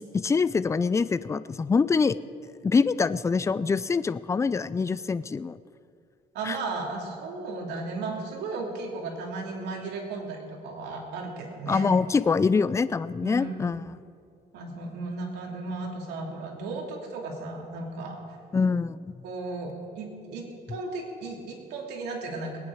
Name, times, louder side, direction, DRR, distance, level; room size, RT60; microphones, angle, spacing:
voice 1, 0.0-2.2 2.6-5.6 6.5-6.6 11.7-13.8 18.5-19.2, left 5 dB, 15° left, 16 dB, 0.4 m, -25 dB
voice 2, 6.3-11.9 13.2-13.5 14.5-18.2 19.2-22.6, right 3 dB, 85° right, 0 dB, 2.7 m, -35 dB
20.5 x 9.5 x 4.8 m, 2.3 s
cardioid pair, 110°, 17 cm